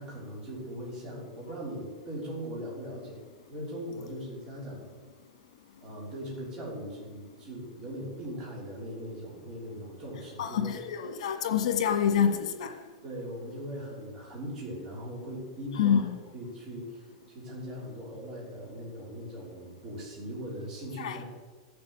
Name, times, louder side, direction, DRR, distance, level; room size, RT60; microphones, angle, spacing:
voice 1, 0.0-3.2 3.5-4.9 5.8-10.7 13.0-21.2, equal, 20° right, 3.3 m, -40 dB
voice 2, 10.4-12.7 15.7-16.2 21.0-21.2, left 8 dB, 90° left, 1.5 m, -27 dB
14.5 x 7.0 x 7.8 m
supercardioid pair, 180°, 3 cm